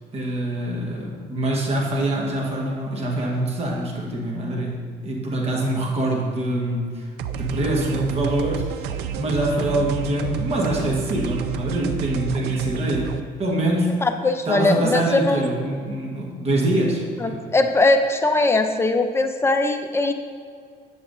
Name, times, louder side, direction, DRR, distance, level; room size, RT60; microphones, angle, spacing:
voice 1, 0.1-7.0 7.3-13.1 13.4-13.9 14.4-17.5, right 1 dB, 35° right, -2 dB, 1.3 m, -24 dB
sound 1, 7.2-13.2, right 7 dB, 80° right, 0.4 m, -29 dB
voice 2, 14.0-15.5 17.2-20.1, left 2 dB, 15° left, 6 dB, 0.5 m, -20 dB
7.9 x 6.9 x 2.6 m, 2.1 s
cardioid pair, 110°, 17 cm